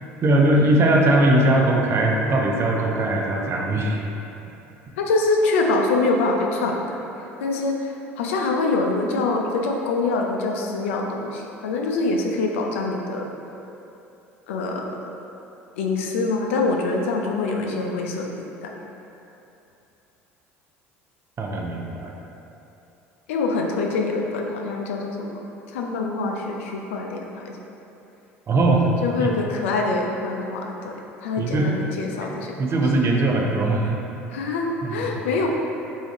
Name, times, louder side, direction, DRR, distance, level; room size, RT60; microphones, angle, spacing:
voice 1, 0.2-4.0 21.4-22.1 28.5-28.9 29.2-29.3 31.4-31.7 32.6-34.0 34.8-35.2, right 1 dB, 35° right, 0 dB, 0.6 m, -20 dB
voice 2, 5.0-7.0 7.4-13.3 14.5-15.0 15.8-18.3 18.6-18.7 23.3-25.3 25.7-27.5 29.0-32.6 34.3-35.5, left 3 dB, 75° left, 1 dB, 0.4 m, -25 dB
3.4 x 2.7 x 4.1 m, 2.9 s
hypercardioid pair, 65°, 7 cm